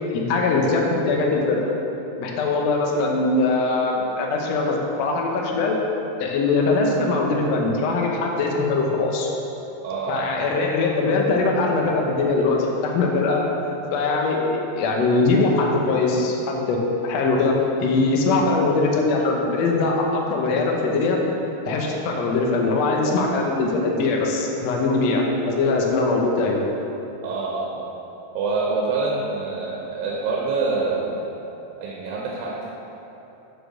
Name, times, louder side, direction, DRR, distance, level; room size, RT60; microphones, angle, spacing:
voice 1, 0.1-1.7 2.2-5.8 6.2-9.3 10.1-13.4 13.9-17.5 17.8-21.2 21.6-26.6, left 3 dB, 70° left, -1 dB, 1.7 m, -21 dB
voice 2, 9.8-10.2 27.2-27.9 28.3-31.3 31.8-32.7, right 4 dB, 90° right, -3 dB, 2.7 m, -26 dB
8.5 x 4.9 x 6.3 m, 3.0 s
omnidirectional pair, 4.0 m